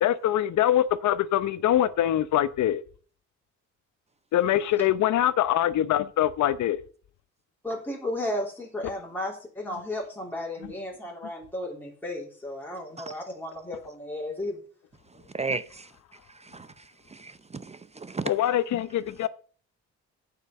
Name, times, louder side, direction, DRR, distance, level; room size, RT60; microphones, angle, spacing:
voice 1, 0.0-2.8 4.3-6.8 18.2-19.3, left 12 dB, 70° left, 0.8 m, -23 dB
voice 2, 7.6-14.6, left 1 dB, 5° left, 3.2 m, -34 dB
voice 3, 15.3-15.9 16.4-16.7 17.1-18.3, right 4 dB, 20° right, 0.6 m, -34 dB
9.1 x 5.8 x 6.5 m
cardioid pair, 90°, 30 cm